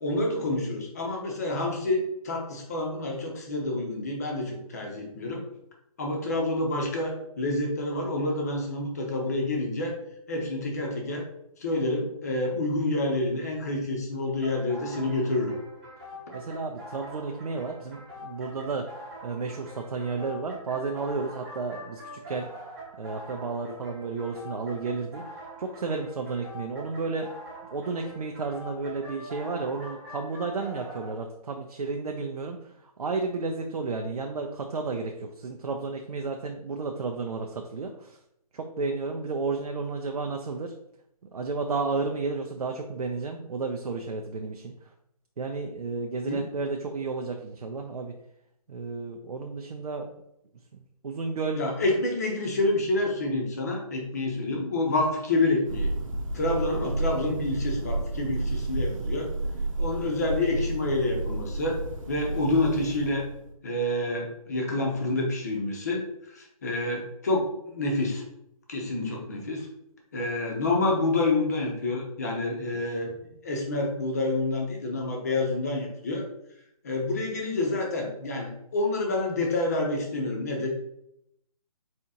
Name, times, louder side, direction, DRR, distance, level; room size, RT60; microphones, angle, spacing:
voice 1, 0.0-5.4 6.0-10.0 10.3-11.2 11.6-15.5 46.3-46.4 51.6-55.9 56.3-59.3 59.8-61.8 62.1-63.3 63.6-66.0 66.3-68.2 68.7-69.7 70.1-73.1 73.4-76.2 76.8-80.7, left 2 dB, 25° left, 0 dB, 0.7 m, -28 dB
sound 1, 14.4-31.1, equal, 15° right, 1.1 m, -44 dB
voice 2, 16.3-22.5 23.0-25.2 25.6-27.3 27.7-32.6 32.8-38.2 38.5-40.7 41.3-44.7 45.4-48.1 48.7-50.0 50.7-51.6, right 4 dB, 80° right, 3 dB, 0.6 m, -32 dB
Thunder, 55.6-63.5, right 2 dB, 55° right, 0.9 m, -31 dB
4.2 x 2.9 x 3.6 m, 0.78 s
hypercardioid pair, 170°, 20 cm